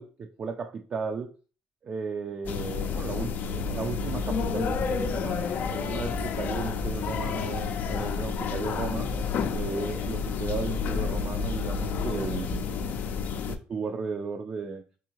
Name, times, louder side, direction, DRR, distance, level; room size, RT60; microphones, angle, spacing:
voice 1, 0.0-1.3 1.8-9.1 9.5-12.6 13.4-14.8, right 5 dB, 40° right, 5 dB, 0.4 m, -35 dB
sound 1, 2.4-13.6, left 5 dB, 55° left, 0.4 m, -30 dB
3.6 x 2.6 x 2.9 m, 0.37 s
supercardioid pair, 85°, 3 cm